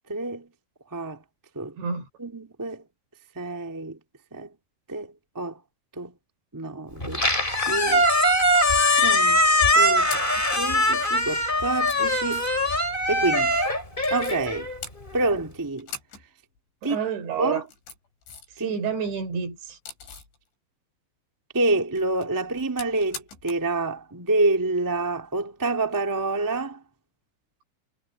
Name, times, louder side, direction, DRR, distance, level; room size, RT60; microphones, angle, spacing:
voice 1, 0.1-0.5 0.9-1.2 1.5-1.8 2.2-2.8 3.3-4.0 4.3-4.5 4.9-5.6 5.9-6.1 6.5-7.2 7.7-8.2 9.0-12.5 13.1-13.7 14.1-14.7 15.1-15.9 16.8-17.0 17.4-17.7 18.6-18.8 21.5-26.8, right 2 dB, 10° right, 1.0 m, -28 dB
Squeak, 7.0-15.2, left 1 dB, 10° left, 4.9 m, -22 dB
sound 1, 8.5-9.1 9.8-10.5 11.2-11.3 11.7-12.7 14.0-14.5 14.8-15.5 15.8-16.3 16.6-16.7 17.5-18.6 18.9-20.4 21.8-23.7 24.0-24.1 25.9-26.0, left 5 dB, 75° left, 9.5 m, -42 dB
voice 2, 16.8-17.6 18.6-19.8, right 6 dB, 70° right, 6.0 m, -29 dB
omnidirectional pair, 5.4 m